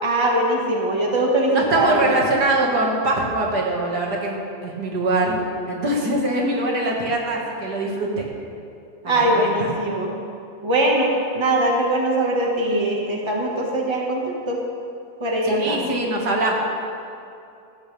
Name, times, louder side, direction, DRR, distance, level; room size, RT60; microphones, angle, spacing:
voice 1, 0.0-2.1 9.0-10.1 10.6-14.6 15.2-15.9, right 1 dB, 15° right, -1 dB, 1.7 m, -21 dB
voice 2, 1.5-5.4 5.7-8.3 9.0-9.5 15.4-16.5, right 2 dB, 85° right, -2 dB, 2.5 m, -23 dB
16.0 x 14.5 x 3.5 m, 2.6 s
omnidirectional pair, 1.7 m